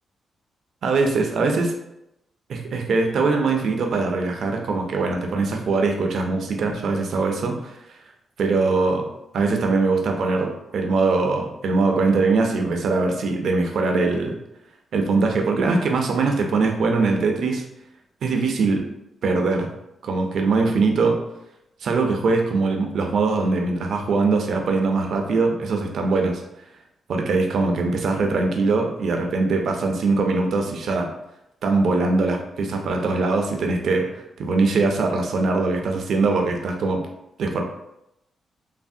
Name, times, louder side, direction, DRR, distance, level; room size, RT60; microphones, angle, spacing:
voice 1, 0.8-1.8 2.5-7.8 8.4-9.1 9.3-14.4 14.9-17.6 18.2-18.8 19.2-19.7 20.0-21.2 21.8-26.4 27.1-31.1 31.6-37.0 37.4-37.6, right 3 dB, 70° right, 3 dB, 0.4 m, -22 dB
3.3 x 2.1 x 2.6 m, 0.84 s
cardioid pair, 95°, 0 cm